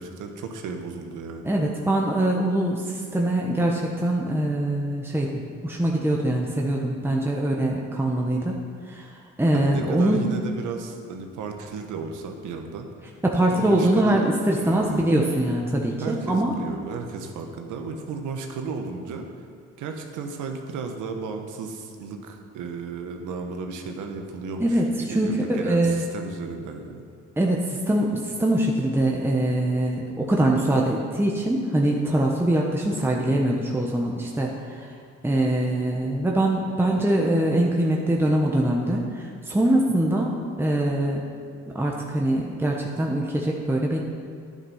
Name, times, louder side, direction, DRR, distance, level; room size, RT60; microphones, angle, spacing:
voice 1, 0.0-1.6 9.5-12.9 13.5-14.2 14.6-15.0 16.0-19.5 19.8-27.0, right 4 dB, 85° right, 4 dB, 1.3 m, -34 dB
voice 2, 1.4-9.1 9.4-10.3 13.2-16.5 24.6-26.1 27.4-34.9 35.2-41.2 41.7-44.0, right 1 dB, 10° right, -1 dB, 1.2 m, -23 dB
11.0 x 9.1 x 5.6 m, 2.2 s
cardioid pair, 90°, 30 cm